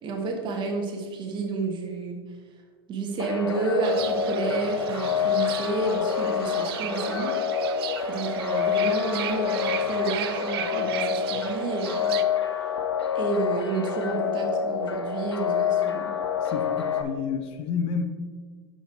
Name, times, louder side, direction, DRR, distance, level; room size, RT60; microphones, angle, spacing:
voice 1, 0.0-2.2 2.9-12.1 13.1-16.1, right 3 dB, 35° right, 2 dB, 1.6 m, -30 dB
sound 1, 3.2-17.0, left 7 dB, 85° left, 0.6 m, -27 dB
Fowl / Bird, 3.8-12.2, right 12 dB, 65° right, 0.5 m, -36 dB
voice 2, 16.4-18.0, left 6 dB, 45° left, 7 dB, 0.7 m, -30 dB
6.3 x 5.4 x 4.5 m, 1.5 s
hypercardioid pair, 95°, 14 cm